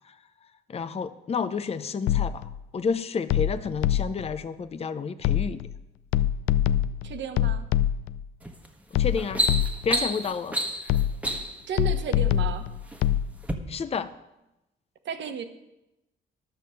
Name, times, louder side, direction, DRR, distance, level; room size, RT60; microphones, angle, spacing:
voice 1, 0.7-2.4 2.7-5.6 8.9-9.4 9.8-10.6 13.7-14.1, left 5 dB, 30° left, 11 dB, 0.6 m, -30 dB
sound 1, 2.1-2.6 3.3-4.3 5.2-5.8 6.1-8.2 8.9-10.0 10.9-11.4 11.8-13.3, left 11 dB, 85° left, 0.4 m, -25 dB
voice 2, 7.0-7.6 11.7-12.6 15.0-15.4, right 7 dB, 65° right, 7 dB, 1.3 m, -33 dB
sound 2, 8.4-8.7 9.0-11.7 12.5-13.0 13.4-13.5, equal, 5° right, 1.3 m, -29 dB
12.0 x 6.7 x 6.6 m, 0.93 s
cardioid pair, 90°, 20 cm